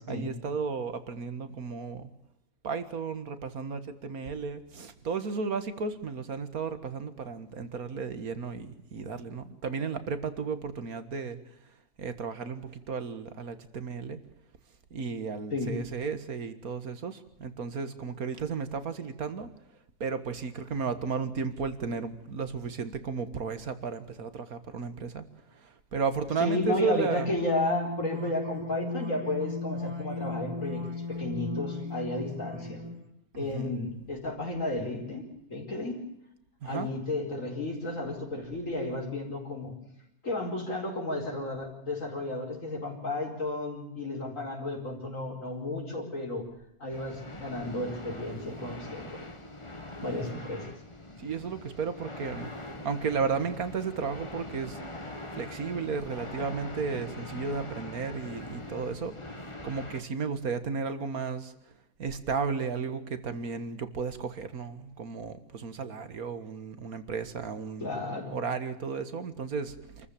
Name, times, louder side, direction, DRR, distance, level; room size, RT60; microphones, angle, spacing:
voice 1, 0.1-2.1 2.6-11.4 12.0-14.2 14.9-19.5 20.0-25.2 25.6-27.3 29.8-29.9 33.4-33.7 36.6-36.9 50.0-50.4 51.2-52.5 52.8-54.8 55.3-59.2 59.6-61.5 62.0-67.9 68.3-70.1, right 5 dB, 70° right, 11 dB, 2.1 m, -34 dB
sound 1, 26.3-33.1, left 3 dB, 15° right, 3.2 m, -37 dB
voice 2, 26.4-32.8 33.3-36.1 36.6-39.8 40.2-46.5 46.8-49.2 50.0-50.7 67.8-68.4, left 2 dB, 55° left, 0 dB, 5.1 m, -33 dB
sound 2, 46.9-60.0, left 1 dB, 20° left, 1.8 m, -42 dB
27.0 x 14.5 x 8.6 m, 0.80 s
omnidirectional pair, 1.6 m